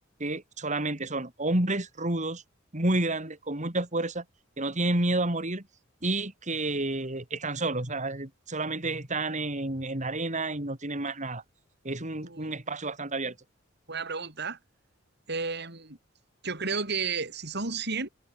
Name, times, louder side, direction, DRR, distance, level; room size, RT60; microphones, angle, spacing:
voice 1, 0.2-2.4 2.7-4.2 4.6-5.6 6.0-11.4 11.8-13.4, right 2 dB, 40° right, 4.0 m, -30 dB
voice 2, 12.2-12.5 13.9-14.6 15.3-16.0 16.4-18.1, right 4 dB, 55° right, 6.3 m, -32 dB
head